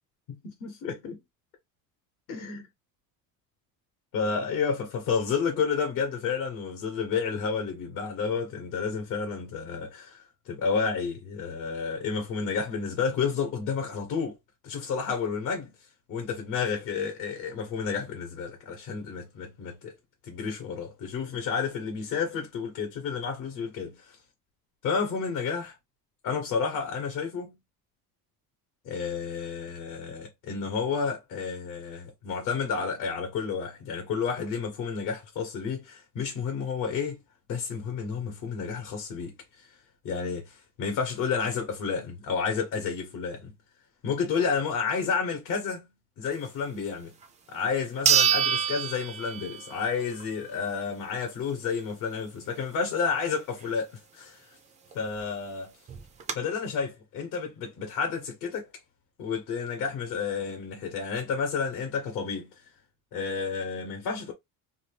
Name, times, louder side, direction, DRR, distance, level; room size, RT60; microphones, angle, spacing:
voice 1, 0.3-1.2 2.3-2.7 4.1-14.4 14.6-15.7 16.1-19.9 20.2-24.2 24.8-25.8 26.2-27.6 28.8-37.2 37.5-39.8 40.0-43.5 44.0-45.9 46.2-47.1 47.5-54.5 54.9-55.7 56.3-58.7 59.2-62.7 63.1-64.3, left 5 dB, 55° left, 0.9 m, -31 dB
sound 1, 47.2-47.3 48.0-49.8 50.2-50.3 54.9-55.0 55.2-55.3 55.9-56.3, right 8 dB, 20° right, 0.3 m, -25 dB
2.7 x 2.3 x 3.2 m
cardioid pair, 165°, 37 cm